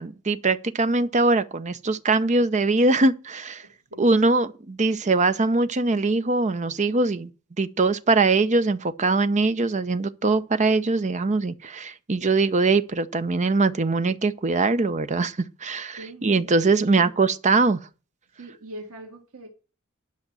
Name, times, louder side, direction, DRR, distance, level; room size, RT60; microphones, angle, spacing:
voice 1, 0.0-3.6 4.0-7.3 7.6-17.8, right 3 dB, 35° right, 0.7 m, -22 dB
voice 2, 3.6-4.2 16.0-16.3 16.8-17.1 18.3-19.5, right 1 dB, 85° right, 1.9 m, -42 dB
10.5 x 5.9 x 7.5 m
head